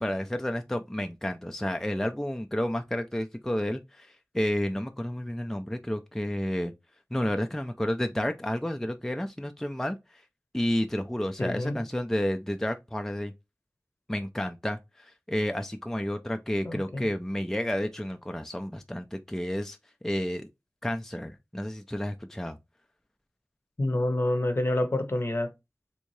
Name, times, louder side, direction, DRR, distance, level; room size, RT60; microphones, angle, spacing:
voice 1, 0.0-6.7 7.1-10.2 10.5-13.3 14.1-19.8 20.0-20.5 20.8-22.6, equal, 5° left, 0.3 m, -31 dB
voice 2, 11.4-11.8 16.6-17.1 23.8-25.5, left 1 dB, 50° left, 0.7 m, -28 dB
3.5 x 2.7 x 3.1 m
wide cardioid pair, 55°, 5 cm